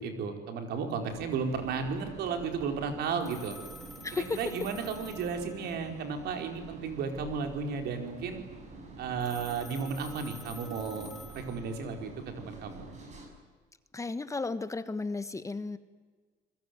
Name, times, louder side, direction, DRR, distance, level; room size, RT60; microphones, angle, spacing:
voice 1, 0.0-3.6 4.1-8.4 9.0-12.1 12.4-12.9, right 5 dB, 75° right, 5 dB, 4.8 m, -34 dB
sound 1, 1.1-13.3, right 3 dB, 45° right, 7.7 m, -47 dB
Telephone, 3.2-6.1 9.2-12.0, left 1 dB, ahead, 2.7 m, -50 dB
voice 2, 4.0-4.4 13.9-15.8, left 3 dB, 20° left, 12 dB, 1.3 m, -34 dB
28.0 x 21.0 x 9.5 m, 1.4 s
cardioid pair, 110°, 17 cm